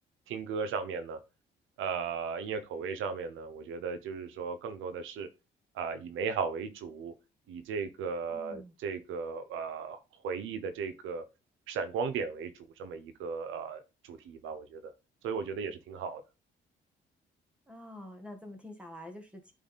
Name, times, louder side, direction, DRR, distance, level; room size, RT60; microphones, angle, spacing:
voice 1, 0.3-1.2 1.8-5.3 5.7-7.1 7.5-10.0 10.2-11.2 11.7-12.5 12.8-14.9 15.2-16.2, right 5 dB, 85° right, 10 dB, 0.8 m, -36 dB
voice 2, 8.3-8.7 17.7-19.5, left 1 dB, 5° right, 4 dB, 1.4 m, -46 dB
8.7 x 3.4 x 4.1 m, 0.28 s
cardioid pair, 90°, 20 cm